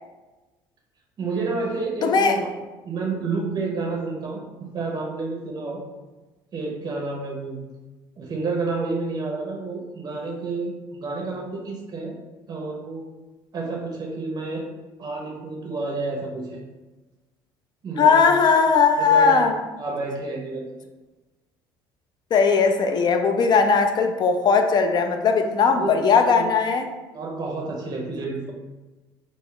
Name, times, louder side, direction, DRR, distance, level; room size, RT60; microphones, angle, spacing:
voice 1, 1.2-2.5 2.8-5.8 6.5-7.6 8.2-12.2 12.5-13.1 13.5-14.7 15.0-16.6 17.8-18.3 19.0-19.4 19.8-20.6 25.8-26.5 27.1-28.5, right 3 dB, 40° right, 0 dB, 0.6 m, -30 dB
voice 2, 2.0-2.4 18.0-19.5 22.3-26.9, left 5 dB, 45° left, 6 dB, 0.4 m, -18 dB
2.2 x 2.0 x 3.6 m, 1.2 s
supercardioid pair, 75°, 10 cm